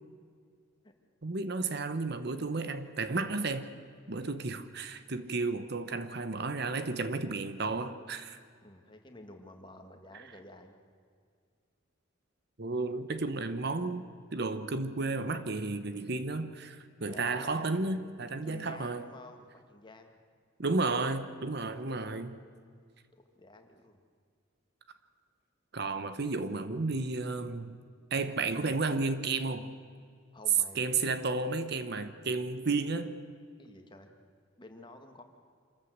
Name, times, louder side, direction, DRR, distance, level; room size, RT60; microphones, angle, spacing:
voice 1, 1.2-3.7 4.1-8.4 10.1-10.2 12.6-14.0 14.3-19.1 20.6-22.4 25.7-27.8 28.1-29.7 30.7-33.2, right 3 dB, 50° right, 11 dB, 1.0 m, -32 dB
voice 2, 8.6-10.8 17.1-17.9 18.4-20.2 21.7-22.3 23.1-24.0 30.3-31.0 33.6-34.1 34.6-35.2, left 2 dB, 20° left, 4 dB, 1.8 m, -51 dB
26.5 x 14.0 x 7.9 m, 2.1 s
head